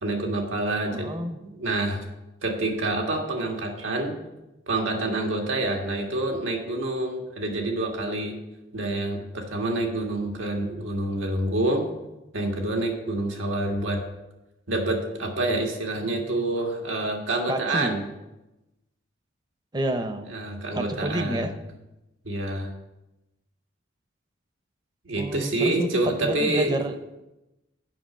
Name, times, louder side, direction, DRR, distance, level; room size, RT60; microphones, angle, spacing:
voice 1, 0.0-1.1 1.5-2.0 2.4-4.2 4.7-8.4 8.7-11.9 12.3-14.0 14.7-18.1 20.3-21.5 22.2-22.7 25.0-26.8, right 2 dB, 90° right, 1 dB, 1.7 m, -27 dB
voice 2, 0.9-1.4 17.5-17.9 19.7-20.3 20.7-21.5 25.2-27.2, right 1 dB, 20° right, 8 dB, 0.6 m, -29 dB
7.6 x 5.9 x 7.2 m, 0.98 s
head